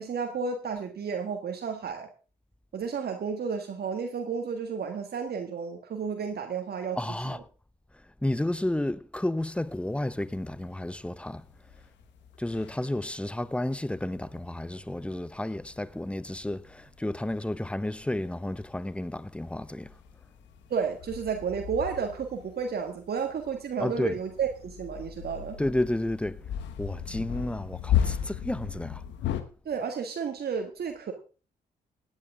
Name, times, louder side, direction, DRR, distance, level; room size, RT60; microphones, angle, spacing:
voice 1, 0.0-2.1 2.7-7.0 20.7-25.6 29.6-31.1, right 6 dB, 55° right, 1.6 m, -32 dB
voice 2, 7.0-7.5 8.2-11.5 12.4-20.0 23.8-24.2 25.6-26.5 26.8-29.0, left 1 dB, 5° left, 0.8 m, -31 dB
sound 1, 9.5-11.1 11.3-29.4, left 9 dB, 75° left, 1.2 m, -36 dB
17.5 x 9.8 x 3.6 m
hypercardioid pair, 40°, 19 cm